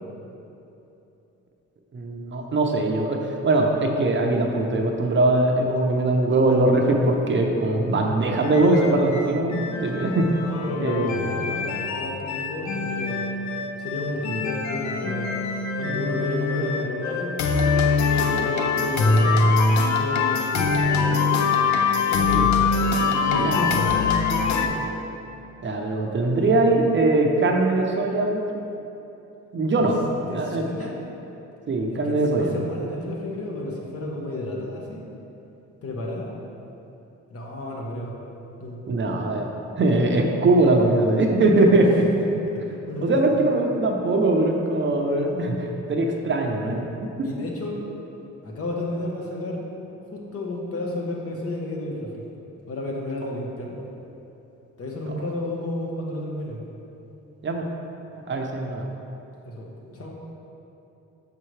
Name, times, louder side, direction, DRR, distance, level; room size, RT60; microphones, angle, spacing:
voice 1, 1.9-10.5 10.8-11.1 14.3-14.4 22.3-22.4 23.3-23.8 25.6-28.4 29.5-30.7 31.7-32.5 38.9-39.5 39.8-42.1 43.0-46.8 55.1-55.2 57.4-57.7 58.1-58.9, right 2 dB, 40° right, 2 dB, 0.7 m, -21 dB
sound 1, 8.4-24.7, left 4 dB, 70° left, 0.6 m, -23 dB
voice 2, 10.4-13.4 13.8-15.3 15.8-17.4 18.2-19.6 19.9-21.3 21.9-24.9 29.8-29.9 30.3-31.0 32.0-35.0 35.8-36.3 37.3-38.1 38.6-38.8 42.2-43.5 47.2-47.8 48.4-49.6 50.1-52.2 52.7-53.8 54.8-56.6 59.4-59.7 60.0-60.2, left 2 dB, 50° left, -1 dB, 1.2 m, -32 dB
6.8 x 5.6 x 3.2 m, 2.9 s
cardioid pair, 90°, 30 cm